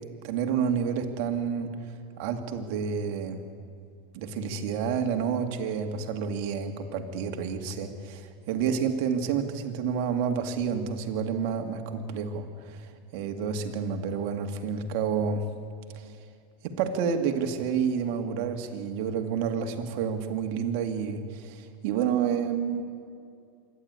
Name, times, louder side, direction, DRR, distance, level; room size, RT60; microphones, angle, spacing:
voice 1, 0.2-1.9 2.2-3.4 4.1-15.5 15.9-16.0 16.6-22.8, right 7 dB, 60° right, 5 dB, 2.3 m, -29 dB
26.5 x 11.5 x 9.7 m, 2.4 s
hypercardioid pair, 115°, 0 cm